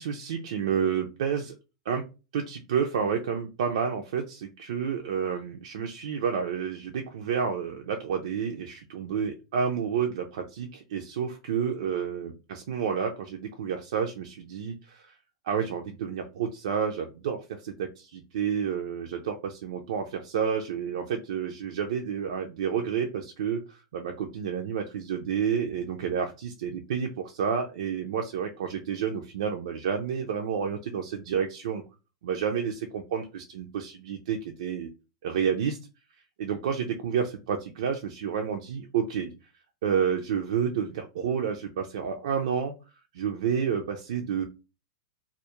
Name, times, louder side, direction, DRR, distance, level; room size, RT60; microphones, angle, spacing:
voice 1, 0.0-1.5 1.9-2.0 2.3-15.1 15.4-31.8 32.2-34.9 35.2-35.8 36.4-39.3 39.8-42.7 43.1-44.4, right 7 dB, 75° right, 3 dB, 0.4 m, -30 dB
2.3 x 2.0 x 2.9 m, 0.30 s
hypercardioid pair, 120°, 3 cm